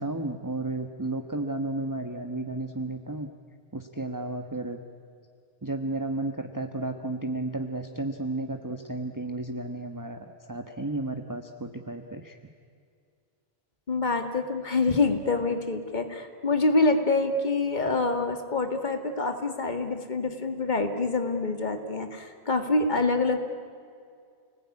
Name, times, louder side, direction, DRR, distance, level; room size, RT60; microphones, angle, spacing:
voice 1, 0.0-3.3 3.7-4.8 5.6-12.4, right 2 dB, 20° right, 5 dB, 1.3 m, -33 dB
voice 2, 13.9-23.4, left 3 dB, 45° left, 7 dB, 2.2 m, -26 dB
30.0 x 20.0 x 9.8 m, 2.3 s
omnidirectional pair, 1.1 m